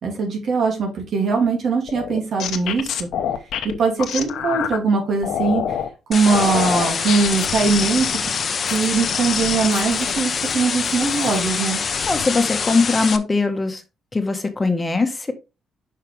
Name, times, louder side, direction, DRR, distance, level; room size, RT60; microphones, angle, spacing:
voice 1, 0.0-3.1 3.8-5.8 6.1-8.1 8.7-11.8, right 4 dB, 60° right, 2 dB, 2.4 m, -21 dB
sound 1, 1.9-4.8 5.2-5.9 6.3-10.5 10.8-11.5 11.9-12.2, left 9 dB, 75° left, 0.9 m, -27 dB
sound 2, 6.1-13.2, left 6 dB, 45° left, 0.8 m, -25 dB
voice 2, 12.1-13.8 14.1-15.3, left 3 dB, 20° left, 6 dB, 1.3 m, -21 dB
5.8 x 5.7 x 3.3 m, 0.26 s
cardioid pair, 90°, 0 cm